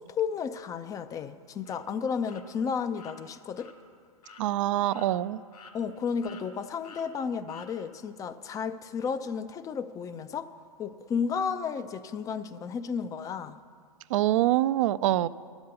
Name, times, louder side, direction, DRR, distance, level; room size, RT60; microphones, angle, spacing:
voice 1, 0.0-3.7 5.7-10.5 10.8-13.6, left 6 dB, 15° left, 12 dB, 0.4 m, -33 dB
sound 1, 1.6-1.8 2.3-2.4 2.9-3.2 3.6-3.7 4.2-4.4 4.9-5.1 5.5-6.0 6.2-6.5 6.8-7.1 7.5-7.7, left 5 dB, 70° left, 1.3 m, -50 dB
voice 2, 4.4-5.4 14.1-15.3, right 14 dB, 55° right, 17 dB, 0.4 m, -25 dB
12.0 x 7.0 x 6.7 m, 2.1 s
hypercardioid pair, 110°, 20 cm